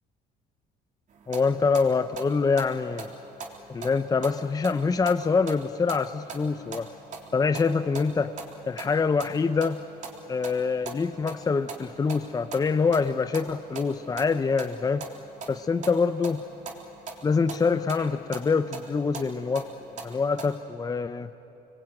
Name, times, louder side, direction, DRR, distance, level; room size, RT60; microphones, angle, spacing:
sound 1, 1.1-20.6, right 4 dB, 50° right, 3.7 m, -43 dB
voice 1, 1.3-3.1 3.7-6.9 7.3-8.3 8.7-9.8 10.3-15.1 15.5-16.4 17.2-19.7 20.0-21.3, left 4 dB, 20° left, 11 dB, 0.7 m, -25 dB
26.0 x 22.0 x 9.1 m, 3.0 s
cardioid pair, 110°, 17 cm